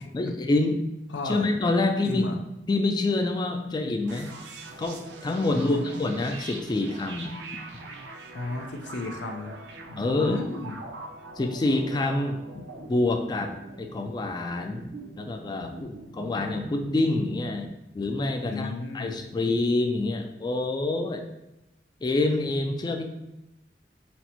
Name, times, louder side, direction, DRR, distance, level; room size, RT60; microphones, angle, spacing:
voice 1, 0.1-0.9 1.2-2.3 2.7-4.3 4.8-7.4 10.0-10.4 11.4-12.4 12.9-13.5 13.8-14.8 15.2-17.7 17.9-21.3 22.0-23.0, left 2 dB, 25° left, 5 dB, 0.3 m, -26 dB
voice 2, 1.1-1.5 2.0-2.4 5.5-5.9 8.3-9.6 9.9-10.8 18.4-19.2, left 3 dB, 90° left, 5 dB, 0.5 m, -33 dB
sound 1, 4.1-17.7, right 3 dB, 85° right, 0.6 m, -43 dB
4.2 x 2.1 x 4.2 m, 0.93 s
head